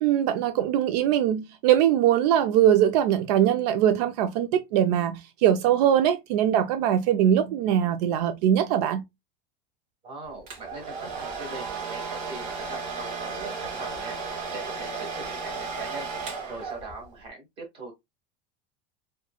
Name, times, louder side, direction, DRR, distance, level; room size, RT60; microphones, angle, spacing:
voice 1, 0.0-9.0, right 10 dB, 85° right, 0.4 m, -22 dB
voice 2, 10.0-17.9, right 2 dB, 25° right, 1.2 m, -41 dB
Domestic sounds home sounds, 10.5-17.1, right 4 dB, 55° right, 1.0 m, -34 dB
2.9 x 2.2 x 2.2 m
cardioid pair, 160°, 21 cm